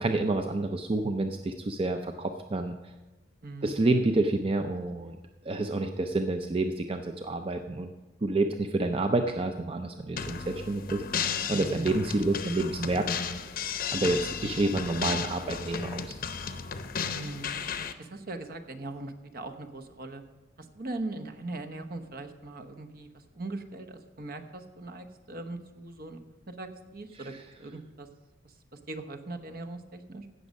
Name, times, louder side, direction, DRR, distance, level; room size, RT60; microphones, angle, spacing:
voice 1, 0.0-2.7 3.6-5.2 5.4-7.9 8.2-13.1 13.9-16.1 27.2-27.3, right 2 dB, 30° right, 6 dB, 0.5 m, -29 dB
voice 2, 3.4-3.7 11.5-11.9 17.1-17.6 18.0-20.2 20.6-26.2 26.5-27.3 27.6-28.1 28.9-30.3, right 2 dB, 55° right, 6 dB, 1.0 m, -40 dB
sound 1, 10.2-17.9, left 6 dB, 50° left, 0.7 m, -34 dB
16.5 x 6.3 x 5.3 m, 1.1 s
head